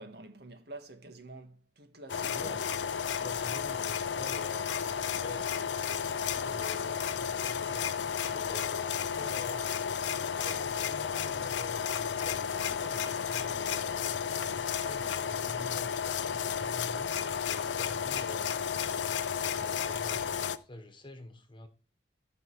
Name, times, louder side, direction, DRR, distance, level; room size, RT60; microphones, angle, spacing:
voice 1, 0.0-2.6, right 2 dB, 60° right, 1.8 m, -48 dB
sound 1, 2.1-20.6, left 7 dB, 80° left, 0.6 m, -32 dB
voice 2, 2.3-2.8 3.1-4.7 5.2-9.7 10.1-14.2 14.5-15.9 16.3-18.6 19.6-21.7, left 1 dB, 25° left, 1.3 m, -48 dB
14.0 x 5.3 x 4.8 m
head